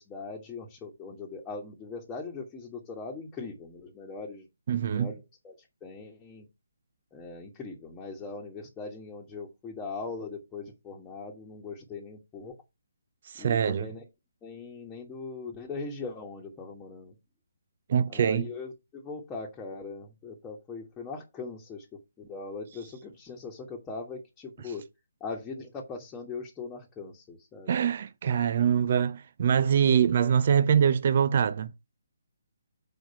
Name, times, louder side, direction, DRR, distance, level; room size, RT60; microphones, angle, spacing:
voice 1, 0.0-5.5 5.8-6.5 7.1-12.5 13.4-14.0 14.4-17.1 18.1-24.8 25.2-27.8, left 4 dB, 15° left, 1.4 m, -40 dB
voice 2, 4.7-5.1 13.2-13.9 17.9-18.5 27.7-31.7, right 8 dB, 45° right, 0.5 m, -24 dB
6.6 x 4.4 x 5.5 m
figure-of-eight pair, 145°, 0 cm